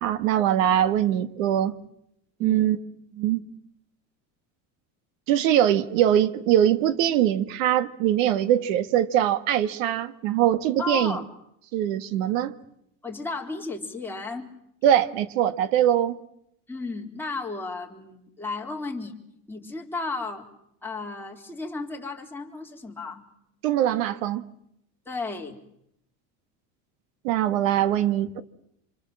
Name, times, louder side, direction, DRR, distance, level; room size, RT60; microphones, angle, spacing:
voice 1, 0.0-1.8 2.4-2.8 3.2-3.4 5.3-11.2 11.7-12.5 14.8-16.2 23.6-24.4 27.2-28.4, right 11 dB, 80° right, 1.5 m, -22 dB
voice 2, 2.4-2.7 10.8-11.3 13.0-14.5 16.7-19.2 19.5-20.5 20.8-23.2 25.1-25.6, left 3 dB, 5° left, 3.6 m, -34 dB
27.5 x 25.0 x 7.6 m
supercardioid pair, 130°, 39 cm